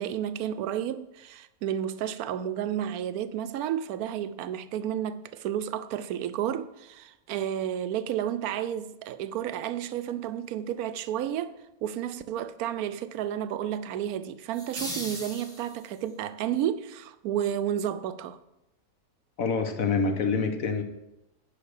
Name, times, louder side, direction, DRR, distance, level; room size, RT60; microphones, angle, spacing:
voice 1, 0.0-18.4, right 10 dB, 75° right, 1.0 m, -31 dB
sound 1, 14.5-16.1, equal, ahead, 1.6 m, -38 dB
voice 2, 19.4-20.8, left 5 dB, 60° left, 1.4 m, -26 dB
10.5 x 5.1 x 6.5 m
omnidirectional pair, 1.7 m